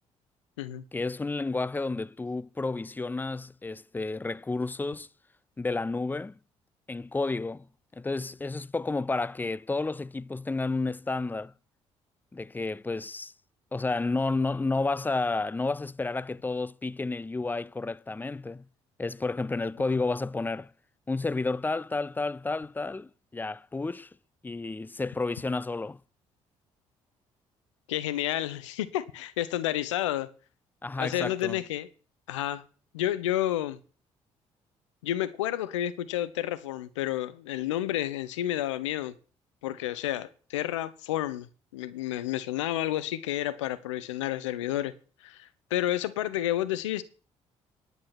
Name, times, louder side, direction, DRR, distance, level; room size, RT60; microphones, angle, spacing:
voice 1, 0.9-5.1 5.6-6.4 6.9-7.7 7.9-11.5 12.3-13.3 13.7-18.6 19.0-20.7 21.1-24.1 24.4-26.0 30.8-31.6, left 3 dB, 10° left, 0.5 m, -31 dB
voice 2, 27.9-30.3 31.0-31.9 32.3-32.6 32.9-33.8 35.0-39.1 39.6-41.5 41.7-44.9 45.2-47.0, left 13 dB, 75° left, 0.9 m, -30 dB
11.0 x 8.7 x 6.0 m
figure-of-eight pair, 45°, 16 cm